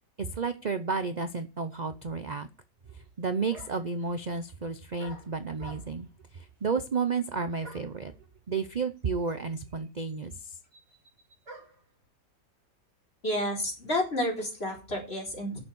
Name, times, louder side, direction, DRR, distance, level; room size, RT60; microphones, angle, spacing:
voice 1, 0.2-2.5 2.9-6.1 6.3-8.1 8.5-10.3, right 4 dB, 40° right, 10 dB, 0.6 m, -32 dB
sound 1, 3.0-3.1 3.5-4.0 5.0-6.1 7.6-8.0 9.0-9.1 9.3-11.9, right 1 dB, 65° right, 5.4 m, -50 dB
voice 2, 13.2-15.6, left 1 dB, 35° left, 0 dB, 4.5 m, -30 dB
10.0 x 7.1 x 8.2 m, 0.31 s
omnidirectional pair, 1.8 m